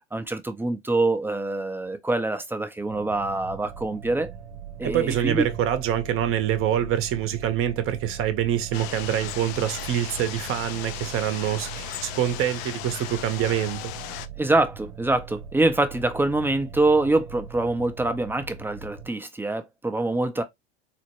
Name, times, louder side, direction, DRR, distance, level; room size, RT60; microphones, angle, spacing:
voice 1, 0.1-4.3 4.8-5.5 14.4-20.4, right 2 dB, 5° right, 0.5 m, -25 dB
sound 1, 2.9-19.1, right 7 dB, 85° right, 0.8 m, -40 dB
voice 2, 4.8-13.9, right 10 dB, 40° right, 0.8 m, -25 dB
sound 2, 8.7-14.3, left 13 dB, 55° left, 0.5 m, -37 dB
4.2 x 2.1 x 2.9 m
hypercardioid pair, 80°, 33 cm